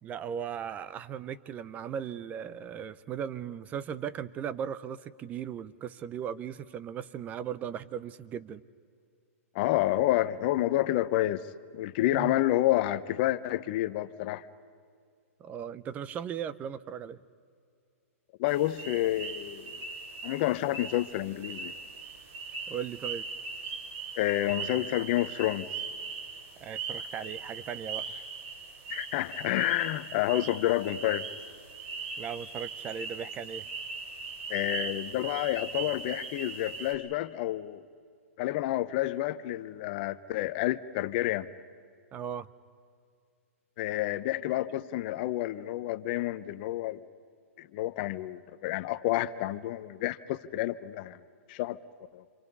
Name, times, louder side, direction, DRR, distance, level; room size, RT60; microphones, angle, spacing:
voice 1, 0.0-8.6 12.1-12.3 15.4-17.2 22.7-23.2 26.6-28.2 32.2-33.7 42.1-42.5, right 8 dB, 20° right, 0.6 m, -37 dB
voice 2, 9.5-11.5 11.7-14.4 18.4-19.8 20.2-21.7 24.2-25.7 28.9-31.3 34.5-37.8 38.4-41.5 43.8-47.0 47.6-51.2 51.5-51.8 52.1-52.2, left 15 dB, 40° left, 0.8 m, -29 dB
sound 1, 18.4-36.9, right 5 dB, 40° right, 7.3 m, -40 dB
28.5 x 26.0 x 5.5 m
hypercardioid pair, 145°, 8 cm